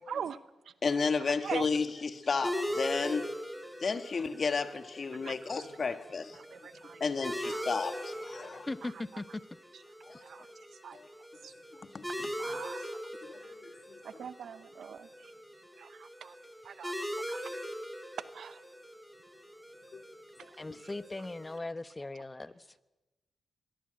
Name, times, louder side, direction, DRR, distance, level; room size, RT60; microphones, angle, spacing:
voice 1, 0.1-0.4 0.6-0.7 1.4-1.7 5.2-5.6 6.3-7.0 7.4-7.7 8.4-9.4 9.7-9.8 10.2-11.0 11.4-11.5 12.4-13.0 13.4-13.5 14.0-15.3 15.8-16.4 16.6-17.4 18.2-18.6 20.4-20.5 20.8-20.9, right 7 dB, 75° right, 0.8 m, -43 dB
voice 2, 0.8-3.3 3.8-6.4 7.0-8.7 10.1-10.2 10.9-11.0 11.9-12.3 13.2-14.0 19.9-20.0, left 4 dB, 55° left, 1.7 m, -33 dB
sound 1, 2.4-21.6, equal, ahead, 4.4 m, -41 dB
voice 3, 8.7-9.4 20.6-22.7, left 2 dB, 25° left, 1.1 m, -39 dB
24.5 x 19.0 x 7.9 m
supercardioid pair, 45°, 0 cm